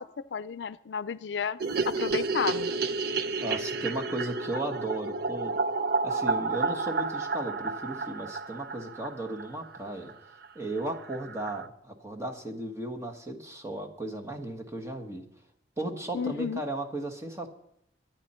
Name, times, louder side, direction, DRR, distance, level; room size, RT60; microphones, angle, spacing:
voice 1, 0.0-1.6 1.9-2.7 16.1-16.6, left 6 dB, 85° left, 16 dB, 0.5 m, -32 dB
sound 1, 1.6-9.8 10.1-10.2 10.4-10.5 10.8-10.9 11.1-11.7, right 4 dB, 60° right, 0.5 m, -31 dB
voice 2, 3.4-5.6 6.0-10.1 10.5-15.2 15.8-17.5, right 1 dB, 15° right, 4 dB, 1.5 m, -35 dB
23.0 x 9.3 x 4.4 m, 0.74 s
head